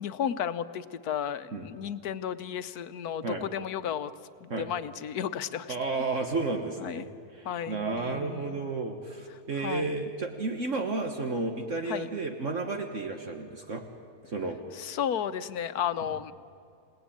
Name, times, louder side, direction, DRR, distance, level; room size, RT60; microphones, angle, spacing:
voice 1, 0.0-4.1 4.4-5.7 6.8-7.1 7.4-8.6 9.6-9.9 11.9-12.1 14.7-16.3, left 9 dB, 80° left, 13 dB, 1.3 m, -33 dB
voice 2, 5.7-7.1 7.3-13.8 14.3-14.6, right 3 dB, 55° right, 4 dB, 1.7 m, -32 dB
28.5 x 18.5 x 8.7 m, 2.5 s
omnidirectional pair, 1.6 m